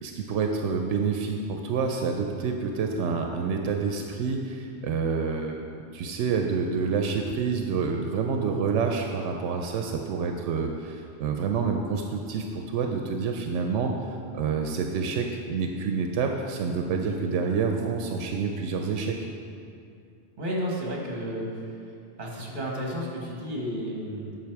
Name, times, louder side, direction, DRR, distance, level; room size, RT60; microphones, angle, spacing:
voice 1, 0.0-19.2, right 5 dB, 85° right, 3 dB, 0.9 m, -28 dB
voice 2, 20.4-21.8 22.2-24.4, equal, 45° right, -2 dB, 1.6 m, -32 dB
8.4 x 5.9 x 4.6 m, 2.5 s
omnidirectional pair, 1.2 m